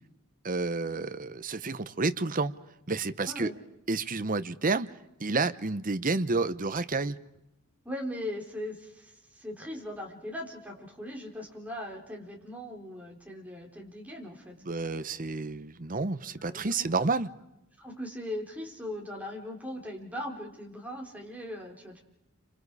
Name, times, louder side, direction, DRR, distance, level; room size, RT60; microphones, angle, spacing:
voice 1, 0.4-2.5 2.9-3.5 3.9-4.9 5.2-7.2 14.7-17.3, right 3 dB, 40° right, 12 dB, 0.9 m, -30 dB
voice 2, 7.8-14.6 16.4-16.9 17.8-22.0, left 1 dB, 5° right, -1 dB, 4.2 m, -39 dB
29.5 x 26.5 x 4.9 m, 0.88 s
head